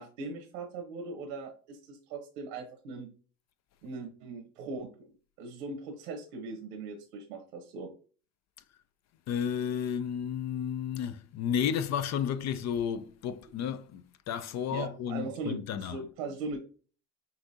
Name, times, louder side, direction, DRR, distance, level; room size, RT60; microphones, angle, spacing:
voice 1, 0.0-3.1 3.8-5.1 5.4-7.9 14.7-16.6, right 3 dB, 90° right, 1.1 m, -40 dB
voice 2, 9.3-16.0, left 8 dB, 45° left, 0.5 m, -32 dB
5.7 x 2.8 x 2.7 m
supercardioid pair, 85°, 37 cm